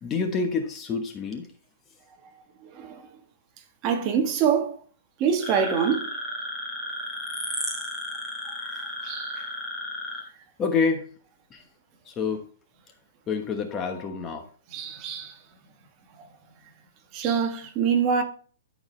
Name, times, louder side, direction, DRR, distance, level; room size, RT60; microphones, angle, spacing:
voice 1, 0.0-1.5 10.6-11.1 11.5-11.6 12.1-12.4 13.3-14.5, left 5 dB, 20° left, 1.1 m, -27 dB
voice 2, 2.7-3.1 3.8-4.8 5.2-6.1 9.0-9.5 14.7-15.4 16.2-16.3 17.1-18.2, right 7 dB, 30° right, 1.3 m, -25 dB
sound 1, 5.4-10.2, left 1 dB, ahead, 2.7 m, -33 dB
13.0 x 4.8 x 3.2 m
hypercardioid pair, 160°, 0 cm